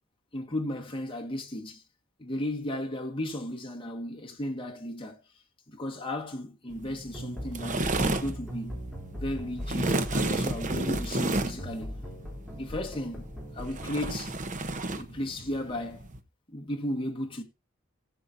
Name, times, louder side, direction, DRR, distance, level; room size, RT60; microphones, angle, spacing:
voice 1, 0.3-1.8 2.2-5.2 5.7-8.7 9.2-12.0 12.5-13.2 13.5-14.4 15.0-16.1 16.5-17.4, left 1 dB, 25° left, 1.7 m, -35 dB
sound 1, 6.7-16.2, right 2 dB, 35° right, 0.9 m, -32 dB
sound 2, 7.1-14.2, equal, ahead, 3.3 m, -40 dB
17.0 x 7.6 x 2.7 m
head